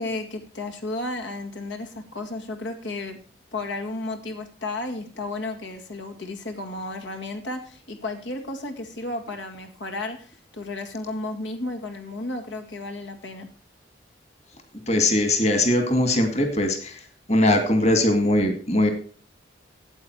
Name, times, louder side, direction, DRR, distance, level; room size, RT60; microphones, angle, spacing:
voice 1, 0.0-3.2 3.5-13.5, left 2 dB, 75° left, 3 dB, 1.9 m, -33 dB
voice 2, 14.9-17.0 17.3-18.9, left 1 dB, 35° left, 6 dB, 2.1 m, -20 dB
14.0 x 8.7 x 4.6 m, 0.41 s
head